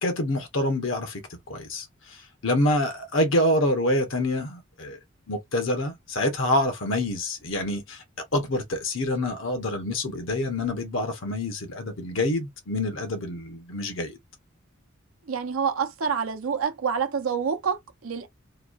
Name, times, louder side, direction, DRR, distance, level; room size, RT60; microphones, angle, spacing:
voice 1, 0.0-5.0 5.3-14.2, left 1 dB, 70° left, 0.9 m, -27 dB
voice 2, 15.3-18.3, right 6 dB, 80° right, 0.6 m, -27 dB
2.9 x 2.3 x 2.5 m
head